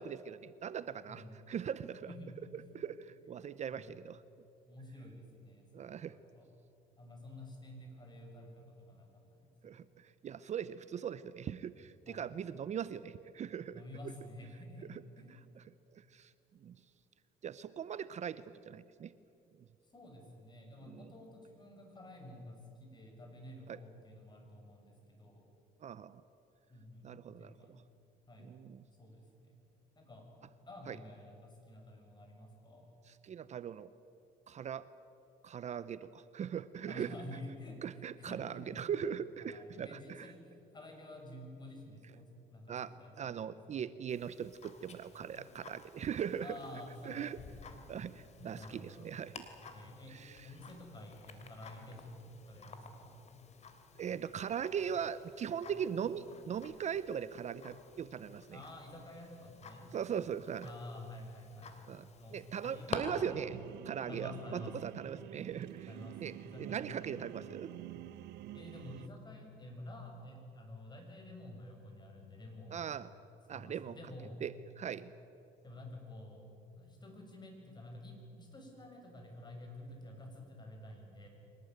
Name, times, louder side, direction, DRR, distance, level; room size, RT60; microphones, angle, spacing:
voice 1, 0.0-2.1 2.7-4.2 5.7-6.2 9.6-13.8 14.9-15.0 15.9-16.3 16.6-16.8 17.4-19.1 20.8-21.1 23.7-23.8 25.8-26.2 27.0-27.8 28.4-28.8 30.9-31.0 33.1-33.9 34.5-34.9 35.4-37.2 37.8-40.3 42.7-46.5 47.1-47.4 47.9-49.5 50.1-50.5 54.0-58.6 59.9-60.7 61.9-62.1 62.3-63.6 63.8-65.9 66.2-67.7 72.7-73.1 73.5-73.9 74.4-75.1, right 8 dB, 45° right, 15 dB, 0.7 m, -40 dB
voice 2, 1.1-1.5 2.1-2.8 3.7-3.9 4.7-6.5 7.0-9.5 12.1-12.4 13.7-15.3 19.8-25.5 26.7-27.8 28.3-28.5 29.0-29.5 29.9-30.3 30.6-32.9 36.9-38.9 39.4-43.9 46.4-47.9 48.5-49.1 49.7-53.2 58.5-59.9 60.6-61.8 62.2-63.2 64.1-64.9 65.9-67.7 68.5-72.9 73.5-74.4 75.6-76.5 76.7-81.3, left 1 dB, 25° left, 2 dB, 6.5 m, -50 dB
Tick-tock, 44.1-63.0, left 6 dB, 40° left, 2.9 m, -52 dB
sound 1, 63.2-69.1, right 13 dB, 80° right, 0.8 m, -48 dB
24.0 x 19.0 x 9.3 m, 2.9 s
cardioid pair, 110°, 17 cm